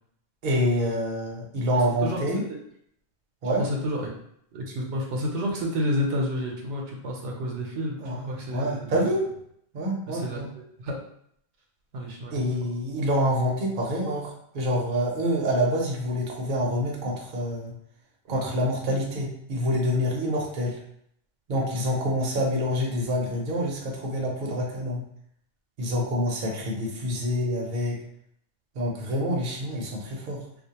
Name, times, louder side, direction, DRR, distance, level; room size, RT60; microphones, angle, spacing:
voice 1, 0.4-2.4 3.4-3.6 8.0-9.3 9.7-10.5 12.3-17.7 18.3-20.8 21.5-25.0 25.8-28.0 28.8-30.4, equal, 55° right, -1 dB, 0.7 m, -27 dB
voice 2, 1.7-2.2 2.5-2.6 3.6-4.1 4.5-9.2 10.1-10.4 10.8-11.0 11.9-12.4 18.3-18.5, equal, 85° right, -1 dB, 0.9 m, -30 dB
2.4 x 2.0 x 2.8 m, 0.69 s
omnidirectional pair, 1.2 m